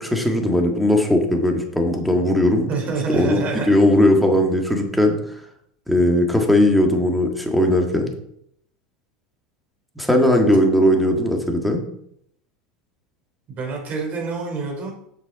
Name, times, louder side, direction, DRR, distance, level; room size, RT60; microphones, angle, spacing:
voice 1, 0.0-2.7 3.1-5.2 5.9-8.1 10.0-11.8, left 1 dB, ahead, 2 dB, 1.7 m, -18 dB
voice 2, 2.7-3.8 13.5-14.9, right 4 dB, 40° right, 1 dB, 3.4 m, -26 dB
7.8 x 6.1 x 4.1 m, 0.71 s
hypercardioid pair, 105°, 4 cm